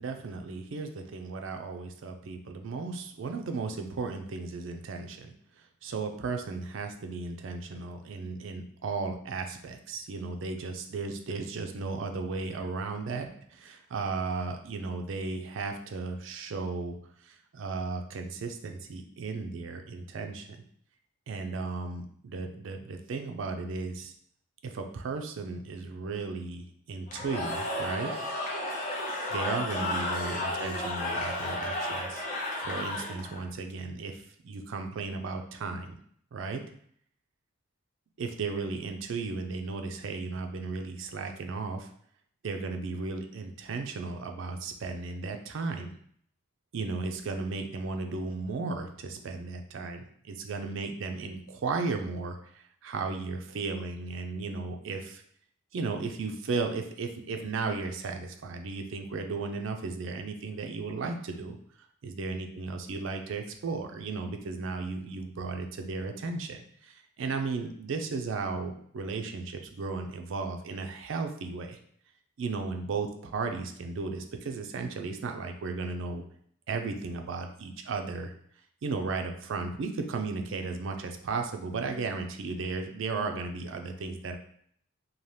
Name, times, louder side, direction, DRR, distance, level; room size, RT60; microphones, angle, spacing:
voice 1, 0.0-20.5 21.3-24.1 24.6-28.1 29.3-32.3 32.6-36.0 36.3-36.6 38.2-41.9 42.4-45.9 46.7-55.2 55.7-61.6 62.0-71.8 72.4-76.2 76.7-78.3 78.8-84.4, right 4 dB, 65° right, 5 dB, 0.4 m, -35 dB
Cheering / Crowd, 27.1-33.4, left 1 dB, 35° left, 0.6 m, -33 dB
2.7 x 2.2 x 3.2 m, 0.63 s
head